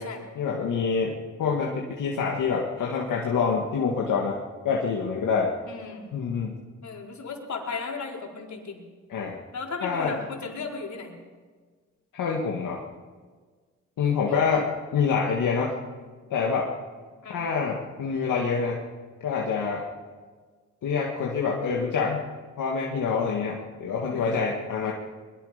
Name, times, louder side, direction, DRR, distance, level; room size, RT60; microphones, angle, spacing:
voice 1, 0.4-4.4 4.6-5.5 6.1-6.6 9.1-9.4 9.8-10.2 12.1-12.8 14.0-15.7 16.3-16.7 17.3-18.8 19.2-19.8 20.8-22.2 22.6-24.9, left 5 dB, 85° left, -2 dB, 2.2 m, -26 dB
voice 2, 5.7-6.1 6.8-8.8 9.5-11.2 14.3-14.4 17.2-17.4 24.0-24.5 24.8-24.9, left 4 dB, 65° left, -1 dB, 4.6 m, -36 dB
23.0 x 22.0 x 5.3 m, 1.5 s
cardioid pair, 70°, 31 cm